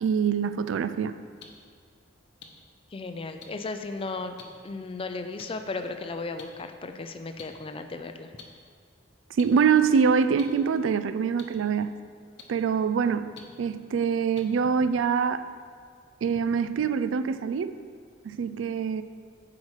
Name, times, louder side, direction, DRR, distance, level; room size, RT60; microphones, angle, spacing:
voice 1, 0.0-1.2 9.4-12.0 12.5-13.3 13.6-15.4 16.2-17.7 18.2-19.0, right 6 dB, 80° right, 12 dB, 0.3 m, -24 dB
sound 1, 1.4-1.5 2.4-2.5 3.4-3.5 4.4-4.5 5.4-5.5 6.4-6.5 7.4-7.5 8.4-8.5 9.4-9.5 10.4-10.5 11.4-11.5 12.4-12.5 13.4-13.5 14.3-14.4, left 6 dB, 60° left, 0.8 m, -45 dB
voice 2, 2.9-4.4 4.6-8.3, left 3 dB, 30° left, 7 dB, 0.4 m, -35 dB
8.3 x 4.9 x 4.8 m, 2.1 s
head